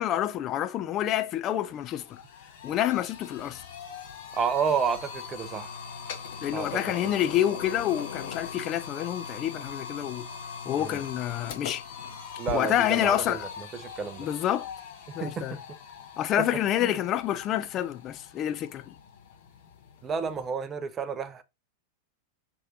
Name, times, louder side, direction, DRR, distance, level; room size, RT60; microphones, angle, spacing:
voice 1, 0.0-2.2 2.6-3.6 6.4-10.3 10.7-11.8 12.5-13.5 14.2-14.7 15.1-15.6 16.2-18.9, left 11 dB, 35° left, 0.5 m, -28 dB
sound 1, 1.1-1.2 1.5-20.5, left 6 dB, 55° left, 1.4 m, -41 dB
voice 2, 4.3-5.7 6.5-6.8 10.8-11.0 12.4-13.4 13.8-14.3 15.2-15.6 16.8-16.9 20.0-21.4, right 6 dB, 25° right, 0.7 m, -30 dB
6.1 x 3.3 x 2.7 m
figure-of-eight pair, 90°, 0 cm